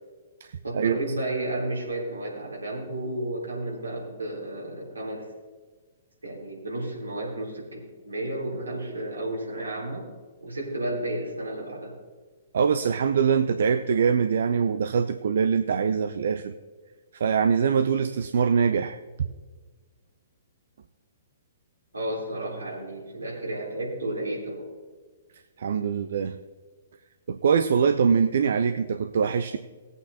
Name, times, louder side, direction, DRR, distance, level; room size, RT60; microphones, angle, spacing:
voice 1, 0.6-5.3 6.2-10.1 10.4-11.9 21.9-24.7, right 1 dB, 85° right, -3 dB, 3.5 m, -32 dB
voice 2, 12.5-16.6 17.1-19.0 25.6-26.4 27.3-29.6, right 6 dB, 60° right, 11 dB, 0.4 m, -23 dB
18.5 x 8.4 x 2.8 m, 1.4 s
figure-of-eight pair, 120°, 0 cm